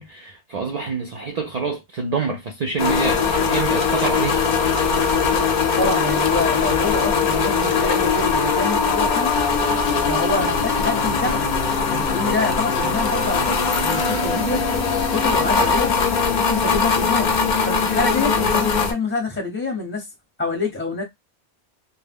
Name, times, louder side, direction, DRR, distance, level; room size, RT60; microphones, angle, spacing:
voice 1, 0.0-4.4, right 4 dB, 60° right, 0.4 m, -26 dB
sound 1, 2.8-18.9, left 5 dB, 55° left, 0.6 m, -20 dB
voice 2, 5.8-9.3 10.1-11.6 11.8-14.6 15.1-16.0 16.3-17.4 17.6-20.1 20.4-21.0, left 3 dB, 10° left, 0.6 m, -26 dB
2.3 x 2.0 x 3.4 m
omnidirectional pair, 1.1 m